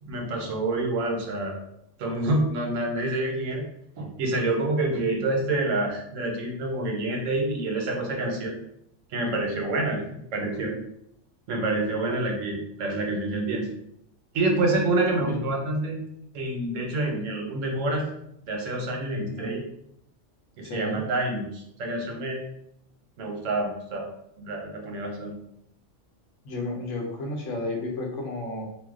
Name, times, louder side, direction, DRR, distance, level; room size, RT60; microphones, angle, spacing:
voice 1, 0.0-1.6 2.0-3.7 4.0-8.5 9.1-10.8 11.5-13.7 14.3-16.0 16.3-18.1 18.5-19.6 20.6-22.4 23.2-24.1 24.4-25.4, right 2 dB, 85° right, 1 dB, 1.1 m, -27 dB
voice 2, 20.6-21.0 26.4-28.6, left 2 dB, 80° left, 0 dB, 1.1 m, -32 dB
2.6 x 2.1 x 3.6 m, 0.76 s
omnidirectional pair, 1.3 m